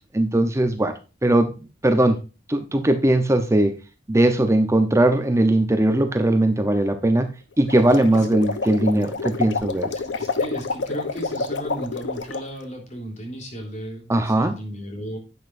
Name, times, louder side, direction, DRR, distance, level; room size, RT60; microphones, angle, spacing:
voice 1, 0.1-1.5 1.8-2.2 2.5-3.8 4.1-7.3 7.6-9.9 14.1-14.5, right 1 dB, 15° right, 8 dB, 0.8 m, -19 dB
sound 1, 7.6-12.5, left 4 dB, 80° left, 0.9 m, -28 dB
voice 2, 10.0-15.2, equal, 40° left, 1 dB, 3.6 m, -35 dB
11.0 x 8.4 x 2.6 m, 0.31 s
head